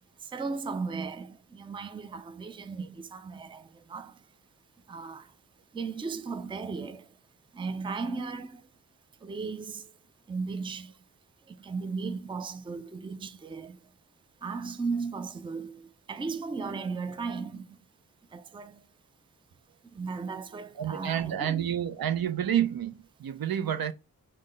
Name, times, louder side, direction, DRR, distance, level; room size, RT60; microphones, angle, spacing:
voice 1, 0.2-4.3 4.9-5.3 5.7-7.1 7.5-8.7 9.2-9.9 10.3-11.0 11.5-13.8 14.4-17.8 18.3-18.9 19.8-21.7, right 4 dB, 15° right, 0.4 m, -36 dB
voice 2, 20.8-23.9, right 10 dB, 70° right, 0.5 m, -29 dB
4.9 x 2.2 x 3.8 m
wide cardioid pair, 75°, 38 cm